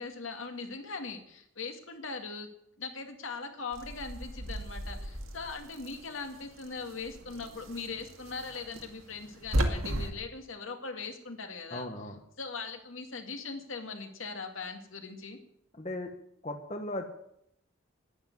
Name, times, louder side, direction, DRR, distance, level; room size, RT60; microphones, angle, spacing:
voice 1, 0.0-2.5 2.8-11.9 12.4-15.4, left 4 dB, 75° left, 5 dB, 2.2 m, -40 dB
sound 1, 3.7-10.1, right 1 dB, 80° right, 2.1 m, -36 dB
voice 2, 11.7-12.1 15.7-16.1 16.4-17.0, left 1 dB, 30° left, 4 dB, 1.3 m, -37 dB
11.5 x 10.0 x 9.5 m, 0.74 s
head